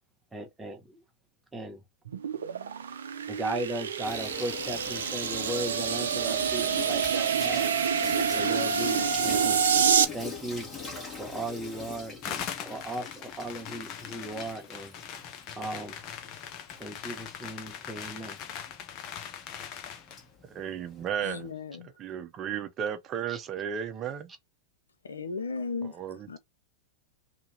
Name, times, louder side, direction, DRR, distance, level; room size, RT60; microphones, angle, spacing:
voice 1, 0.3-1.0 1.5-1.8 3.3-7.7 8.3-9.6 10.1-10.7 11.2-14.9 15.6-16.0 16.8-18.4 23.3-23.5, right 1 dB, 10° right, 1.0 m, -37 dB
sound 1, 2.1-10.0, right 7 dB, 80° right, 0.5 m, -27 dB
Water tap faucet / Sink (filling or washing), 4.0-21.5, left 4 dB, 25° left, 1.6 m, -43 dB
sound 2, 12.2-20.2, left 9 dB, 45° left, 0.7 m, -41 dB
voice 2, 20.5-21.5 22.0-24.3 26.0-26.4, right 8 dB, 35° right, 0.8 m, -34 dB
voice 3, 21.2-21.9 25.0-26.0 26.3-26.4, left 4 dB, 85° left, 0.6 m, -35 dB
2.9 x 2.8 x 3.9 m
hypercardioid pair, 100°, 0 cm